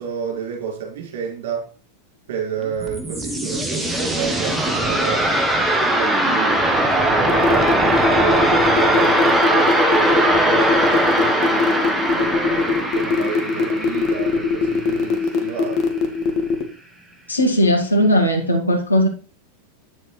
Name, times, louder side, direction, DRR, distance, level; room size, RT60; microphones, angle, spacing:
voice 1, 0.0-1.7 2.3-5.3 5.8-11.8 12.1-15.8, right 7 dB, 55° right, 4.1 m, -30 dB
sound 1, 2.6-15.5, right 1 dB, 5° right, 1.1 m, -20 dB
sound 2, 7.3-16.6, left 5 dB, 40° left, 1.6 m, -20 dB
voice 2, 17.3-19.1, equal, 80° left, 1.7 m, -17 dB
9.0 x 7.2 x 3.2 m
figure-of-eight pair, 90°, 0 cm